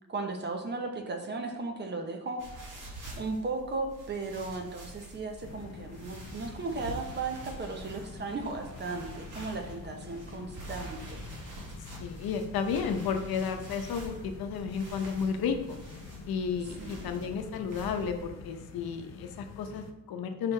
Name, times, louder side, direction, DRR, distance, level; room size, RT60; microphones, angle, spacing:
voice 1, 0.1-2.5 3.2-11.2 16.8-17.1, right 3 dB, 30° right, 4 dB, 0.7 m, -36 dB
sound 1, 2.4-18.2, right 1 dB, 60° right, 1.8 m, -46 dB
sound 2, 5.4-19.9, left 6 dB, 50° left, 0.5 m, -47 dB
voice 2, 12.0-15.8 16.3-20.5, left 6 dB, 90° left, 6 dB, 0.8 m, -32 dB
6.3 x 5.8 x 3.3 m, 1.1 s
wide cardioid pair, 175°, 35 cm